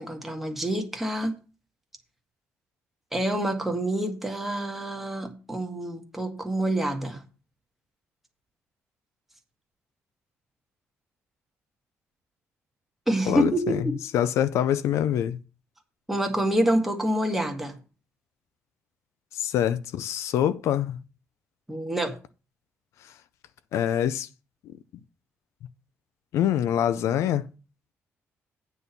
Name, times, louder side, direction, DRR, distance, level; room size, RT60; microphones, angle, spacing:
voice 1, 0.0-1.4 3.1-7.2 13.1-14.0 16.1-17.7 21.7-22.2, right 1 dB, 5° right, 1.5 m, -27 dB
voice 2, 13.3-13.9 14.1-15.4 19.3-21.0 23.7-24.3 26.3-27.4, left 10 dB, 80° left, 0.5 m, -25 dB
9.0 x 4.2 x 6.8 m
cardioid pair, 150°, 5 cm